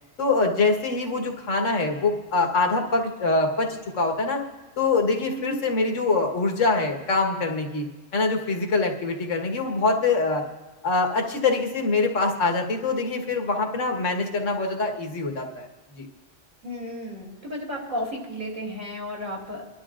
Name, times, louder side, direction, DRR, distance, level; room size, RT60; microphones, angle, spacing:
voice 1, 0.2-4.4 4.8-7.8 8.1-10.4 10.8-15.7 15.9-16.1, left 3 dB, 75° left, 2 dB, 1.7 m, -24 dB
voice 2, 5.3-5.6 16.6-19.6, equal, 40° right, -3 dB, 3.2 m, -33 dB
24.5 x 12.0 x 2.5 m, 1.2 s
omnidirectional pair, 1.3 m